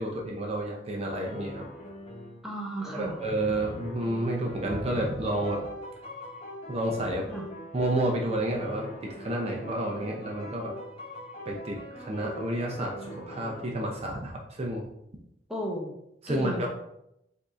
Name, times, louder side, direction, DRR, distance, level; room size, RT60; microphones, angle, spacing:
voice 1, 0.0-1.6 2.9-5.6 6.7-7.3 7.7-10.7 11.5-14.8 16.2-16.7, right 1 dB, 35° right, 0 dB, 0.6 m, -30 dB
sound 1, 1.2-2.4 2.8-14.1, equal, 35° left, 1.0 m, -42 dB
voice 2, 2.4-3.2 7.3-7.5 15.5-15.9 16.3-16.7, equal, 5° right, -2 dB, 0.8 m, -34 dB
5.2 x 2.6 x 3.7 m, 0.82 s
head